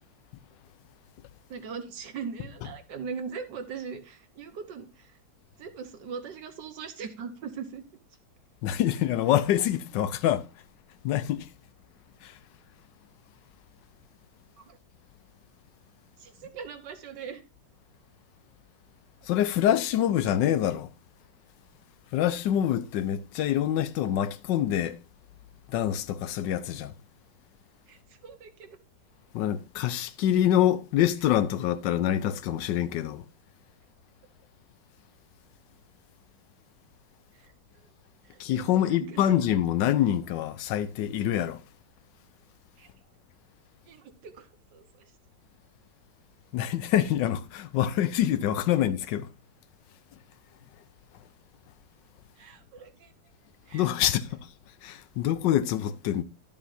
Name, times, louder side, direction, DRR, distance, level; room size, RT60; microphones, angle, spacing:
voice 1, 1.5-5.2 5.6-7.8 14.6-14.8 16.2-17.4 27.9-28.7 37.4-37.5 38.2-38.6 39.0-39.4 42.8-42.9 43.9-45.1 52.4-53.1 53.7-54.1, right 6 dB, 75° right, 1.8 m, -40 dB
voice 2, 8.6-10.5 11.0-11.5 12.2-12.4 19.2-20.9 22.1-25.0 25.7-27.0 29.3-33.2 38.4-41.6 46.5-49.3 53.7-54.5 54.8-56.2, left 11 dB, 85° left, 1.3 m, -26 dB
12.0 x 7.1 x 2.7 m
omnidirectional pair, 1.9 m